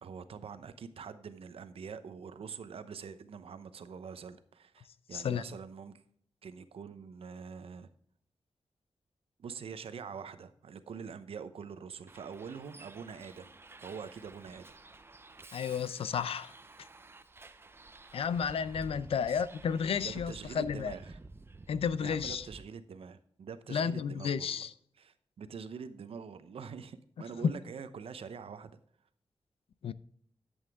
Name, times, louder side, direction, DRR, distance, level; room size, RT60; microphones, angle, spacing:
voice 1, 0.0-6.0 6.4-7.9 9.4-13.5 13.8-14.8 19.3-19.4 20.0-21.2 22.0-24.7 25.0-28.8, right 6 dB, 80° right, 0.8 m, -45 dB
voice 2, 5.1-5.4 15.5-16.5 18.1-20.9 21.7-22.5 23.7-24.7 27.4-27.5 29.8-29.9, left 7 dB, 80° left, 0.5 m, -32 dB
Bus, 12.1-22.6, right 3 dB, 25° right, 0.6 m, -52 dB
11.0 x 8.1 x 3.5 m
wide cardioid pair, 125°, 10 cm